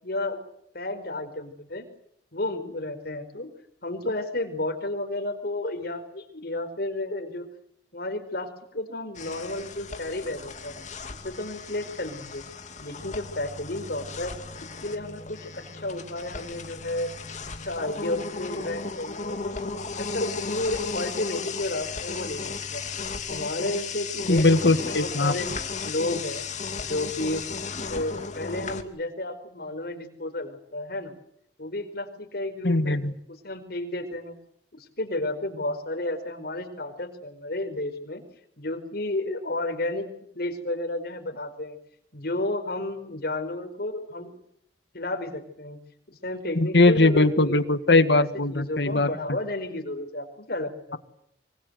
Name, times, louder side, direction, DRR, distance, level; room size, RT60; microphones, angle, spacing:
voice 1, 0.0-0.4 0.7-1.9 2.3-3.5 3.8-7.5 7.9-10.7 11.1-12.4 12.8-14.3 14.8-17.1 17.6-19.6 20.0-22.8 23.3-25.5 25.8-26.5 26.8-27.4 27.8-31.2 31.6-33.0 33.3-34.3 34.7-38.2 38.6-40.1 40.3-41.8 42.1-44.3 44.9-45.8 46.1-47.6 48.1-51.0, left 2 dB, 60° left, 6 dB, 4.8 m, -32 dB
sound 1, 9.1-28.8, left 4 dB, 45° left, 2.6 m, -35 dB
voice 2, 24.3-25.3 32.6-33.1 46.6-49.1, left 2 dB, 75° left, 11 dB, 1.9 m, -20 dB
25.5 x 24.5 x 8.1 m, 0.73 s
head